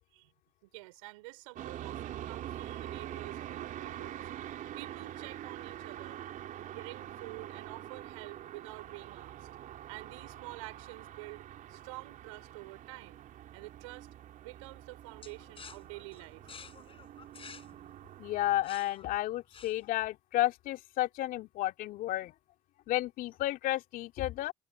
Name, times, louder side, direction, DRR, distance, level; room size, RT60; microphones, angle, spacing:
voice 1, 0.6-4.2 4.8-6.2 6.6-9.5 9.9-13.2 13.5-14.1 14.4-16.5, right 24 dB, 80° right, 4.3 m, -48 dB
sound 1, 1.6-18.6, right 12 dB, 55° right, 3.6 m, -45 dB
sound 2, 15.2-20.1, left 6 dB, 35° left, 6.5 m, -52 dB
voice 2, 18.2-22.3 22.9-24.5, left 15 dB, 60° left, 3.3 m, -32 dB
hypercardioid pair, 65°, 16 cm